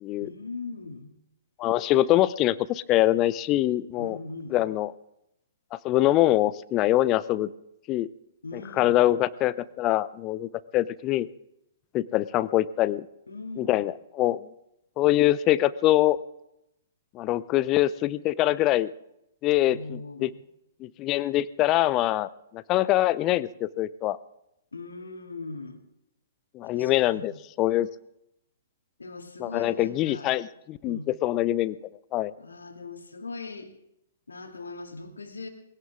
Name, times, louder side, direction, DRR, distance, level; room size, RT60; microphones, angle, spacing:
voice 1, 0.2-1.1 4.0-4.6 8.4-9.0 13.3-13.9 19.6-20.4 24.7-25.8 26.6-27.4 29.0-30.3 30.8-31.1 32.4-33.7 34.3-35.5, left 3 dB, 80° left, 4 dB, 2.6 m, -40 dB
voice 2, 1.6-4.2 4.5-4.9 5.7-7.5 7.9-8.1 8.8-11.3 11.9-13.1 13.6-14.5 15.0-16.2 17.1-18.9 19.4-20.3 20.8-24.2 26.5-27.9 29.4-31.8 32.1-32.3, left 15 dB, 30° left, 18 dB, 0.7 m, -24 dB
20.5 x 17.0 x 3.7 m, 0.81 s
figure-of-eight pair, 115°, 0 cm